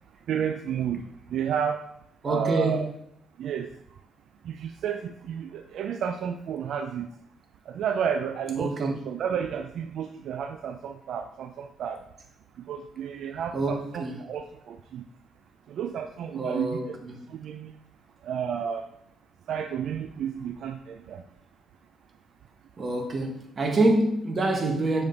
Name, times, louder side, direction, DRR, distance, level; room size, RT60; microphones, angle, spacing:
voice 1, 0.3-1.8 2.3-2.9 3.4-3.7 4.4-7.1 7.7-12.0 12.7-15.0 15.7-17.0 17.3-17.7 18.2-18.9 19.5-21.2, right 8 dB, 70° right, 0.4 m, -31 dB
voice 2, 2.2-2.9 8.6-9.0 13.5-14.2 16.3-17.2 22.8-25.0, right 2 dB, 35° right, 1.4 m, -26 dB
7.3 x 5.0 x 3.9 m
cardioid pair, 90°, 0 cm